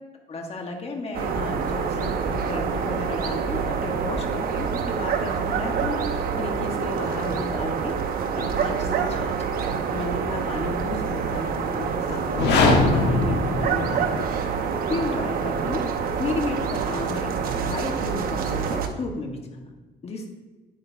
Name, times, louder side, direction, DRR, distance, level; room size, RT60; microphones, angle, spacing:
voice 1, 0.3-8.0 8.3-9.3 9.9-14.2 14.9-15.8 16.2-19.7 20.0-20.3, left 3 dB, 35° left, 2 dB, 1.7 m, -33 dB
sound 1, 1.1-18.9, right 6 dB, 60° right, 1.0 m, -27 dB
sound 2, 12.2-14.3, left 3 dB, 80° left, 1.5 m, -21 dB
9.4 x 9.1 x 2.9 m, 1.3 s
cardioid pair, 110°, 17 cm